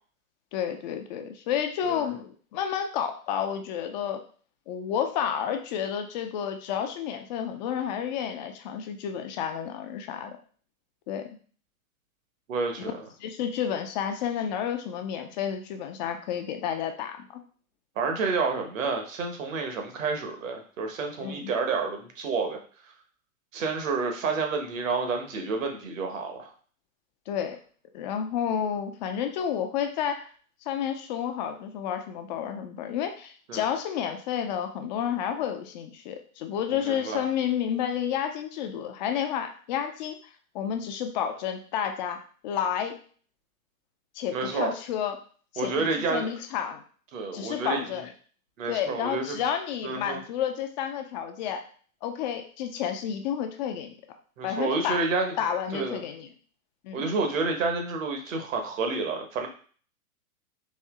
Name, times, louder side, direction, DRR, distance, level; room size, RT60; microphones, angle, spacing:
voice 1, 0.5-4.2 4.7-10.4 11.1-11.4 12.8-12.9 13.2-17.4 21.2-21.5 27.3-27.6 27.9-30.3 30.7-40.2 40.5-43.0 44.2-45.2 45.5-46.8 47.3-48.1 48.7-51.6 52.0-54.0 54.4-55.1 55.4-56.3 56.8-57.1, left 8 dB, 30° left, 6 dB, 0.5 m, -30 dB
voice 2, 12.5-12.9 18.0-22.6 23.5-26.5 33.5-33.6 36.7-37.2 44.3-44.7 45.6-46.3 47.1-47.8 48.6-49.4 49.8-50.2 54.4-55.4 55.7-56.0 56.9-59.5, right 4 dB, 60° right, 4 dB, 1.3 m, -29 dB
4.3 x 2.8 x 3.6 m, 0.43 s
figure-of-eight pair, 110°, 44 cm